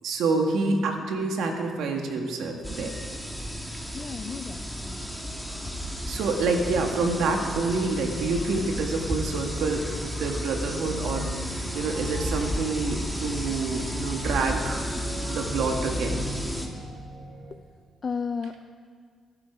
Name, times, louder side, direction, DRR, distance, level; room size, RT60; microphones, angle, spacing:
voice 1, 0.0-2.9 6.1-14.8 15.3-16.3, right 3 dB, 85° right, 2 dB, 2.1 m, -27 dB
sound 1, 2.6-16.7, equal, ahead, 2.0 m, -32 dB
voice 2, 3.9-5.0 18.0-18.6, left 5 dB, 40° left, 7 dB, 0.5 m, -33 dB
sound 2, 10.8-17.6, right 1 dB, 65° right, 1.8 m, -42 dB
21.0 x 12.0 x 4.9 m, 2.1 s
cardioid pair, 115°, 0 cm